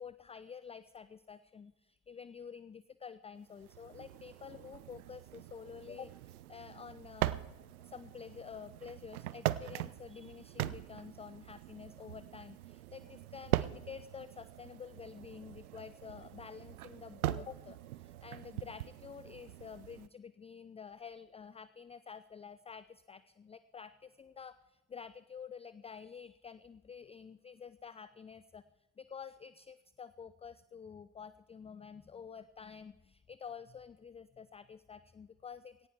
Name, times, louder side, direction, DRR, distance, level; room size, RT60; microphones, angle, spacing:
voice 1, 0.0-7.4 7.8-28.6 29.0-35.9, left 6 dB, 15° left, 16 dB, 0.4 m, -49 dB
sound 1, 3.5-20.1, right 15 dB, 80° right, 0.5 m, -41 dB
17.5 x 15.5 x 3.5 m, 1.1 s
figure-of-eight pair, 45°, 43 cm